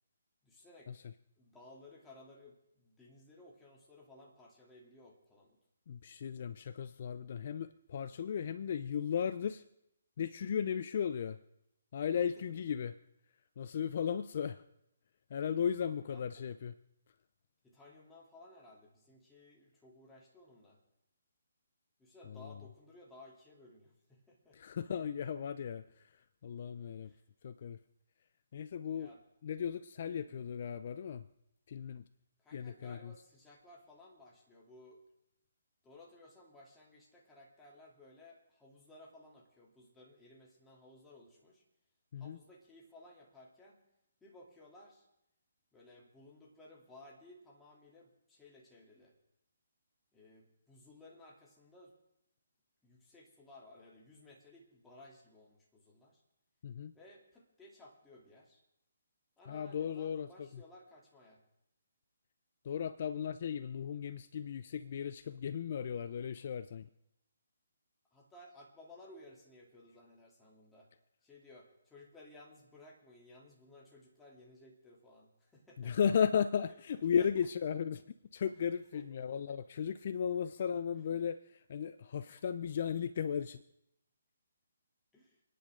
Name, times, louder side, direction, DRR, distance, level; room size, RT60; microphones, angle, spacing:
voice 1, 0.4-1.0 1.4-5.6 12.3-12.4 16.1-16.6 17.6-20.8 22.0-24.6 27.0-27.2 28.9-29.2 30.3-30.4 32.4-35.0 35.8-41.6 42.2-43.8 44.2-45.1 45.7-49.1 50.1-51.9 52.8-56.2 56.9-58.6 59.4-61.4 68.1-70.9 71.2-76.0 77.1-77.5 78.9-79.1 85.1-85.4, left 2 dB, 10° left, -4 dB, 3.3 m, -58 dB
voice 2, 5.9-9.6 10.2-11.4 11.9-12.9 13.6-14.6 15.3-16.7 22.3-22.5 24.5-27.1 27.4-27.8 28.5-29.1 29.4-31.3 31.7-32.0 32.5-33.1 42.1-42.4 56.6-56.9 59.5-60.6 62.6-66.9 75.8-78.0 78.3-83.6, left 7 dB, 50° left, 13 dB, 0.6 m, -36 dB
30.0 x 10.0 x 3.9 m, 0.83 s
hypercardioid pair, 150°, 0 cm